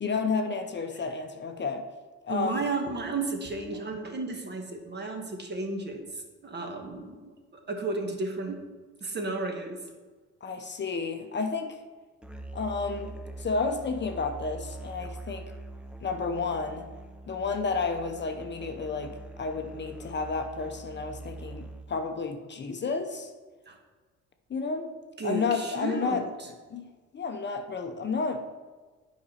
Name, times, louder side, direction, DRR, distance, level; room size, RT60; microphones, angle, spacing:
voice 1, 0.0-1.9 2.2-2.6 10.4-11.8 12.5-15.5 16.0-16.9 17.3-23.3 24.5-24.9 25.2-26.2 26.7-26.8 27.1-28.5, left 4 dB, 35° left, 0.7 m, -31 dB
voice 2, 2.3-8.6 9.0-9.8 23.7-23.8 25.2-26.5, right 3 dB, 35° right, 1.3 m, -33 dB
Musical instrument, 12.2-22.0, right 2 dB, 5° right, 0.6 m, -43 dB
8.6 x 5.1 x 4.3 m
cardioid pair, 90°, 30 cm